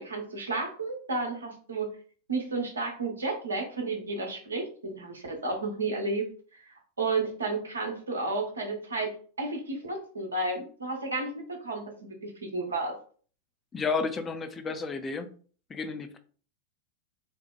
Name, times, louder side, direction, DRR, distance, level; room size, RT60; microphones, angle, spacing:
voice 1, 0.0-1.9 2.3-6.3 6.7-12.9, right 3 dB, 75° right, 0.7 m, -32 dB
voice 2, 13.7-15.3 15.7-16.2, left 4 dB, 20° left, 0.3 m, -32 dB
2.8 x 2.1 x 2.2 m
figure-of-eight pair, 90°, 0 cm